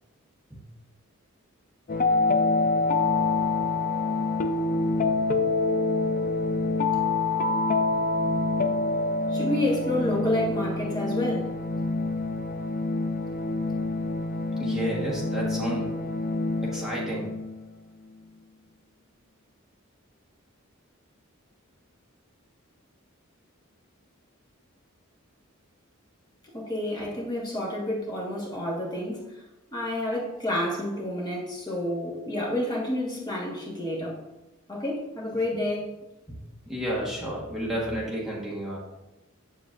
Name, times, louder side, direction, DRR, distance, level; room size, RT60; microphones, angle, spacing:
sound 1, 1.9-17.6, left 3 dB, 40° left, 0.5 m, -26 dB
voice 1, 9.3-11.5 26.5-29.4 29.7-34.2 34.7-35.9, left 1 dB, 20° left, 1.5 m, -29 dB
voice 2, 14.6-15.9 16.6-17.3 36.3-36.4 36.7-38.8, right 1 dB, ahead, 1.3 m, -31 dB
7.9 x 7.5 x 2.5 m
head